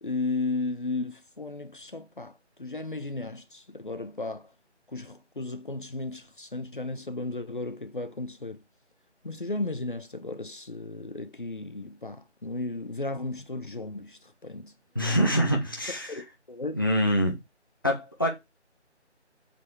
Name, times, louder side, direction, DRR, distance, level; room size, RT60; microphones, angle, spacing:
voice 1, 0.0-2.3 2.6-4.5 4.9-8.6 9.2-14.7 16.1-16.8, left 2 dB, 45° left, 1.3 m, -34 dB
voice 2, 14.9-16.2 16.7-17.4 17.8-18.3, equal, 20° left, 1.1 m, -25 dB
7.6 x 6.0 x 4.8 m
figure-of-eight pair, 180°, 35 cm